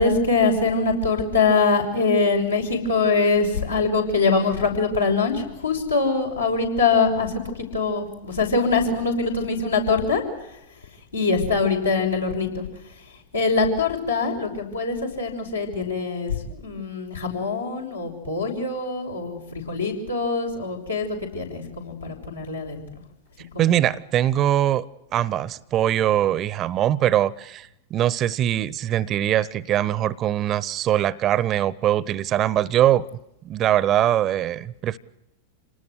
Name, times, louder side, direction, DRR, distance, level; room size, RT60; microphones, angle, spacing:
voice 1, 0.0-10.2 11.1-12.6 13.3-22.8 23.5-23.8, left 4 dB, 80° left, 6.0 m, -23 dB
voice 2, 23.6-24.8 25.1-33.1 33.4-35.0, right 12 dB, 30° right, 0.8 m, -22 dB
27.5 x 19.5 x 8.0 m
figure-of-eight pair, 90°, 0 cm